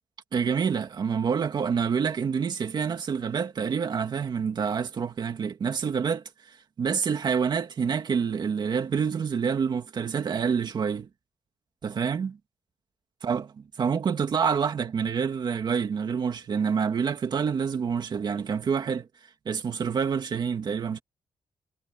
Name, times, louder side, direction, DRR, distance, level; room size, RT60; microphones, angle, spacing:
voice 1, 0.3-11.1 11.8-12.4 13.2-13.5 13.8-19.1 19.5-21.0, right 6 dB, 45° right, 2.2 m, -27 dB
wide cardioid pair, 175°, 11 cm